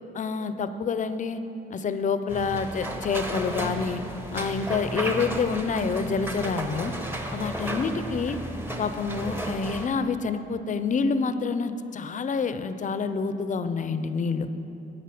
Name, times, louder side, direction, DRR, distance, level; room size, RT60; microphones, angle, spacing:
voice 1, 0.1-1.4 1.7-4.0 4.3-6.9 7.3-8.4 8.8-14.5, left 5 dB, 40° left, 11 dB, 0.6 m, -27 dB
sound 1, 2.3-9.9, right 1 dB, 10° right, 0.9 m, -33 dB
9.1 x 8.3 x 6.0 m, 3.0 s
cardioid pair, 90°, 20 cm